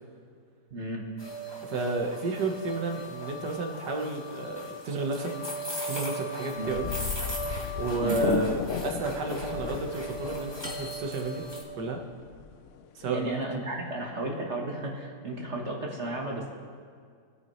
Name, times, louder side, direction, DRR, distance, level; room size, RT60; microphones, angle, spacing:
voice 1, 0.7-1.1 6.5-6.7 8.0-8.5 13.1-16.5, right 2 dB, 45° right, -1 dB, 1.5 m, -33 dB
sound 1, 1.2-11.6, equal, 15° left, 1.9 m, -38 dB
voice 2, 1.7-5.3 5.9-6.9 7.8-11.5 11.8-12.0 13.0-13.3, right 3 dB, 70° right, 2 dB, 1.8 m, -32 dB
sound 2, 6.6-13.4, left 7 dB, 75° left, 0.7 m, -35 dB
22.5 x 9.1 x 3.1 m, 2.1 s
omnidirectional pair, 1.9 m